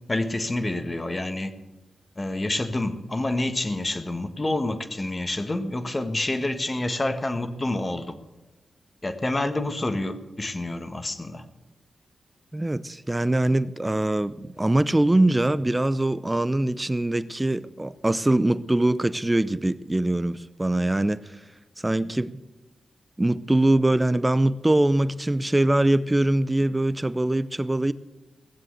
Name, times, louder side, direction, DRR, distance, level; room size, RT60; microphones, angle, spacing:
voice 1, 0.1-1.5 2.1-8.1 9.0-11.5, left 2 dB, 25° left, 1.5 m, -28 dB
voice 2, 12.5-21.4 21.8-22.4 23.2-27.9, right 1 dB, 15° right, 0.7 m, -23 dB
18.0 x 7.6 x 7.9 m
cardioid pair, 65°, 0 cm